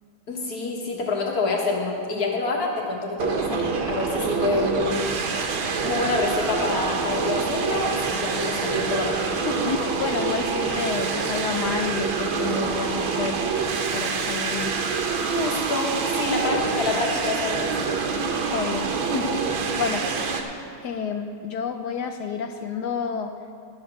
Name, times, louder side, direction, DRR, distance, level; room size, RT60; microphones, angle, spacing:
voice 1, 0.3-5.2 5.8-9.7 15.3-18.0, left 3 dB, 50° left, -1 dB, 2.0 m, -27 dB
sound 1, 3.2-20.4, right 5 dB, 85° right, 1.8 m, -26 dB
voice 2, 9.6-13.4 13.9-14.7 18.5-20.1 20.8-23.3, left 6 dB, 70° left, 6 dB, 1.0 m, -30 dB
12.0 x 7.9 x 6.2 m, 2.3 s
omnidirectional pair, 2.2 m